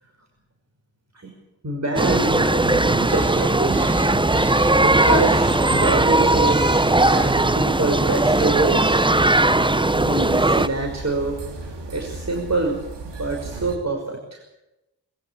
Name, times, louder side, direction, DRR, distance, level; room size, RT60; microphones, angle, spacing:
voice 1, 1.6-3.8 4.4-6.6 7.0-9.0 9.9-11.4 11.9-12.8 13.2-14.4, right 2 dB, 40° right, 2 dB, 5.7 m, -26 dB
sound 1, 2.0-10.7, right 2 dB, 10° right, 0.9 m, -18 dB
sound 2, 2.6-13.8, right 3 dB, 90° right, 3.5 m, -33 dB
20.5 x 15.5 x 8.9 m, 0.93 s
cardioid pair, 45°, 41 cm